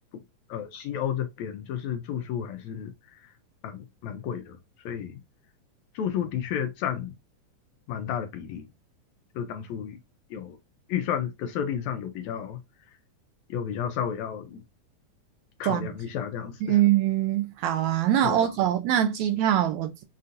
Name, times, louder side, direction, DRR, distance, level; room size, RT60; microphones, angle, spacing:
voice 1, 0.5-3.3 3.6-4.6 4.8-5.2 5.9-7.1 7.9-8.7 9.3-10.0 10.3-10.6 10.9-12.6 13.5-14.6 15.6-16.8 18.2-18.5, left 9 dB, 75° left, 1.7 m, -32 dB
voice 2, 16.7-20.0, right 11 dB, 80° right, 1.7 m, -23 dB
6.3 x 2.7 x 2.5 m
omnidirectional pair, 3.6 m